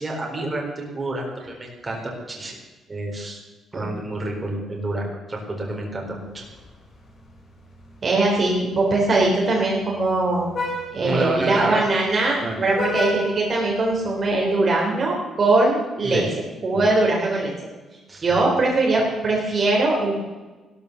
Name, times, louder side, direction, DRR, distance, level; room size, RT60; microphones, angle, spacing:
voice 1, 0.0-2.6 2.9-3.4 3.7-6.4 11.0-11.8 12.4-12.6 16.0-16.2 16.7-16.9 18.1-18.2, right 2 dB, 20° right, 0 dB, 4.1 m, -29 dB
Vehicle horn car horn honking, 6.2-14.4, left 1 dB, 40° left, 4.4 m, -35 dB
voice 2, 8.0-10.4 10.9-16.2 16.6-17.5 18.2-20.3, right 2 dB, 35° right, -2 dB, 3.6 m, -21 dB
16.0 x 13.0 x 6.9 m, 1.3 s
cardioid pair, 145°, 0 cm